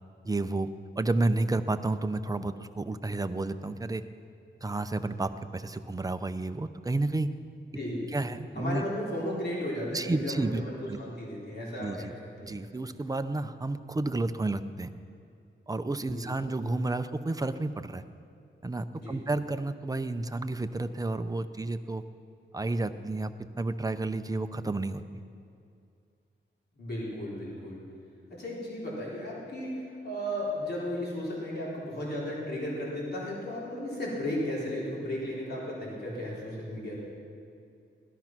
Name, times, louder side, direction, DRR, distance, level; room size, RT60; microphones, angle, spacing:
voice 1, 0.2-0.7 1.0-4.0 4.6-7.3 8.1-8.8 9.9-10.6 10.9-11.0 11.8-12.1 12.4-14.9 15.7-18.0 18.6-22.0 22.5-23.3 23.6-25.0, right 2 dB, 20° right, 9 dB, 0.6 m, -31 dB
voice 2, 7.7-8.1 8.6-12.2 12.4-12.5 16.1-16.3 18.9-19.2 26.8-27.8 28.3-37.0, left 1 dB, 55° left, -5 dB, 3.9 m, -35 dB
17.5 x 13.0 x 6.0 m, 2.5 s
wide cardioid pair, 155°, 20 cm